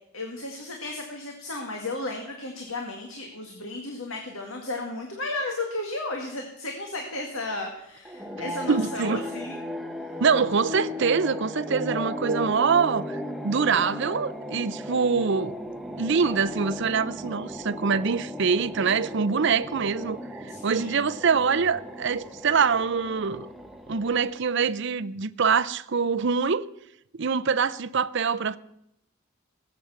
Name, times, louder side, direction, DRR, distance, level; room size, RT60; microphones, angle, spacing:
voice 1, 0.1-9.6 20.5-21.0, left 2 dB, 70° left, 2.0 m, -34 dB
sound 1, 8.0-24.6, left 1 dB, ahead, 0.8 m, -36 dB
voice 2, 8.7-9.2 10.2-15.6 16.0-23.5 23.9-26.7 27.2-28.6, right 5 dB, 55° right, 0.5 m, -24 dB
18.5 x 7.9 x 7.1 m
head